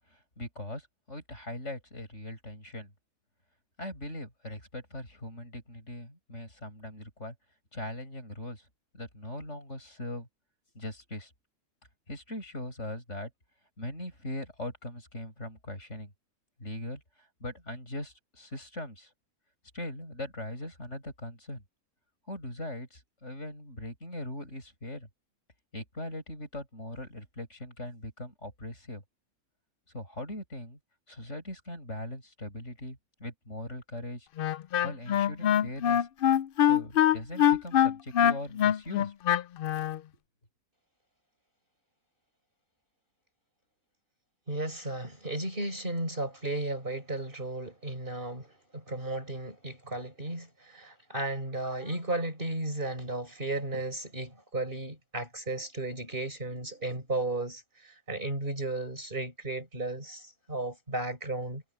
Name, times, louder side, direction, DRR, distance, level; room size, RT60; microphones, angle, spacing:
voice 1, 0.1-2.9 3.8-7.3 7.7-8.6 8.9-10.3 10.7-11.3 12.1-13.3 13.8-16.1 16.6-19.1 19.7-21.6 22.3-25.1 25.7-29.0 29.9-30.8 31.1-34.3 34.8-36.1 36.7-39.1, left 1 dB, 50° left, 8.4 m, -40 dB
Wind instrument woodwind instrument, 34.4-40.0, left 10 dB, 90° left, 0.4 m, -24 dB
voice 2, 44.5-61.6, right 2 dB, 35° right, 5.6 m, -34 dB
omnidirectional pair, 1.5 m